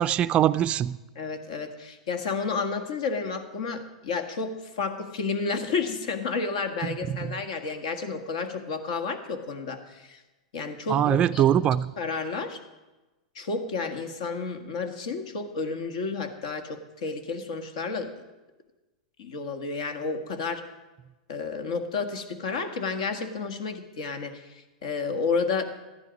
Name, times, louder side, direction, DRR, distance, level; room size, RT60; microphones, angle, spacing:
voice 1, 0.0-1.0 6.8-6.9 10.9-11.9, right 10 dB, 30° right, 11 dB, 0.4 m, -22 dB
voice 2, 1.1-10.2 10.5-11.4 12.0-12.6 13.3-18.2 19.2-20.6 21.3-25.6, left 4 dB, 70° left, 7 dB, 1.6 m, -31 dB
14.0 x 11.0 x 5.2 m, 1.1 s
hypercardioid pair, 115°, 4 cm